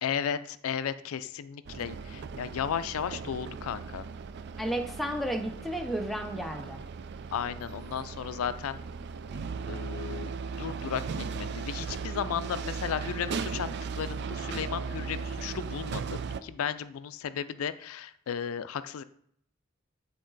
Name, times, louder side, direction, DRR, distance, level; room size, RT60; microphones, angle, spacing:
voice 1, 0.0-4.1 7.3-8.8 9.7-13.7 14.0-19.0, left 8 dB, 90° left, 13 dB, 0.4 m, -34 dB
sound 1, 1.7-16.4, right 5 dB, 55° right, 0.4 m, -37 dB
voice 2, 4.6-6.8, right 1 dB, ahead, 3 dB, 0.6 m, -32 dB
8.5 x 4.0 x 3.9 m, 0.68 s
head